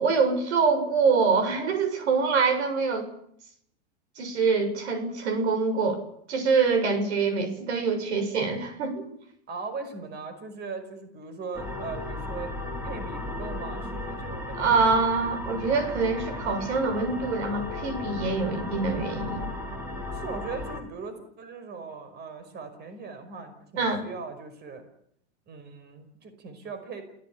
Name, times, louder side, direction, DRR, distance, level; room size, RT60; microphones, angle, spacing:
voice 1, 0.0-3.1 4.2-6.0 6.3-9.1 14.6-19.5 23.8-24.0, right 4 dB, 70° right, 9 dB, 7.2 m, -25 dB
voice 2, 9.5-12.5 12.8-15.1 20.1-24.9 25.5-27.0, right 4 dB, 30° right, 9 dB, 5.3 m, -39 dB
sound 1, 11.5-20.8, left 2 dB, 5° right, 5.3 m, -35 dB
29.0 x 16.5 x 8.6 m, 0.69 s
hypercardioid pair, 125°, 34 cm